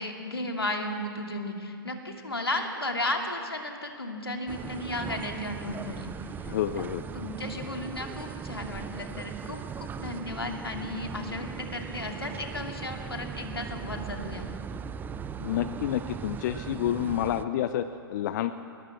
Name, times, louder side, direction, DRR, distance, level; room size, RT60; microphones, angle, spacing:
voice 1, 0.0-6.1 6.8-6.9 7.1-14.5, left 1 dB, 90° left, 3 dB, 2.6 m, -34 dB
sound 1, 4.5-17.4, right 7 dB, 15° right, 0.6 m, -39 dB
voice 2, 6.4-7.0 15.4-18.5, left 11 dB, 50° left, 12 dB, 0.7 m, -29 dB
21.0 x 20.5 x 7.3 m, 2.4 s
figure-of-eight pair, 110°, 12 cm